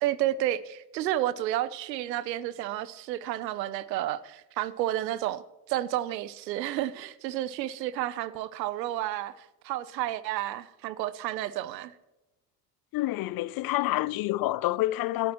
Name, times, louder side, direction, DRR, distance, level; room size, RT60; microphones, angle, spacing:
voice 1, 0.0-5.4 5.7-11.9, right 13 dB, 85° right, 0.8 m, -31 dB
voice 2, 12.9-15.3, left 17 dB, 45° left, 0.5 m, -28 dB
25.5 x 12.0 x 3.0 m
hypercardioid pair, 75°, 49 cm